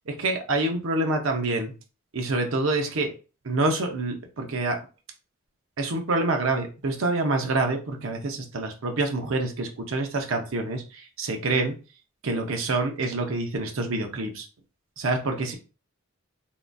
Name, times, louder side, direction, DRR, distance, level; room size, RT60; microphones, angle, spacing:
voice 1, 0.1-1.7 2.1-3.1 3.4-4.8 5.8-10.8 11.2-11.7 12.2-14.5 15.0-15.5, right 2 dB, 75° right, 4 dB, 0.6 m, -26 dB
3.7 x 2.5 x 2.2 m, 0.33 s
head